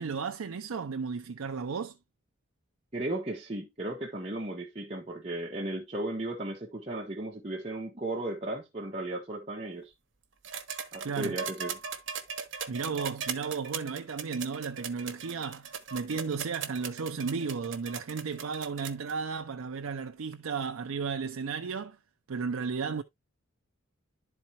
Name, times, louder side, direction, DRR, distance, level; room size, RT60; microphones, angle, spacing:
voice 1, 0.0-2.0 11.0-11.4 12.7-22.0 22.3-23.0, right 5 dB, 85° right, 0.5 m, -34 dB
voice 2, 2.9-9.9 10.9-11.8, right 2 dB, 30° right, 1.1 m, -35 dB
sound 1, 10.4-19.1 20.3-20.4, right 6 dB, 60° right, 1.2 m, -38 dB
11.5 x 4.3 x 2.8 m
head